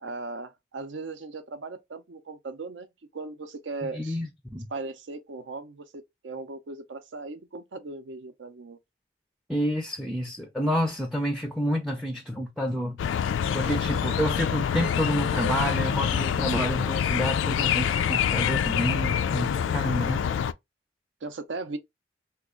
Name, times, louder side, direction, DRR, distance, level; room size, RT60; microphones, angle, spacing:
voice 1, 0.0-2.9 3.1-4.2 4.7-8.8 21.2-21.8, right 3 dB, 70° right, 0.6 m, -38 dB
voice 2, 3.9-4.7 9.5-13.0 13.5-20.3, equal, ahead, 0.4 m, -29 dB
sound 1, 13.0-20.5, left 8 dB, 80° left, 0.3 m, -26 dB
2.9 x 2.3 x 3.6 m
head